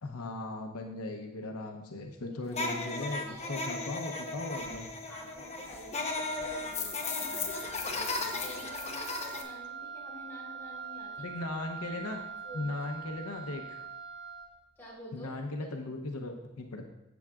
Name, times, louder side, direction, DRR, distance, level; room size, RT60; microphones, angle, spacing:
voice 1, 0.0-4.9 11.2-12.2 12.5-13.9 15.1-16.8, left 2 dB, 75° left, 3 dB, 0.8 m, -38 dB
voice 2, 2.3-3.7 5.1-11.3 12.1-12.2 12.4-12.9 14.8-15.3 15.8-16.0, equal, 10° left, -6 dB, 3.6 m, -49 dB
sound 1, 2.5-9.4, left 3 dB, 30° left, 1.0 m, -36 dB
Wind instrument woodwind instrument, 5.9-14.6, right 6 dB, 55° right, 1.4 m, -44 dB
13.0 x 7.7 x 2.4 m, 0.90 s
head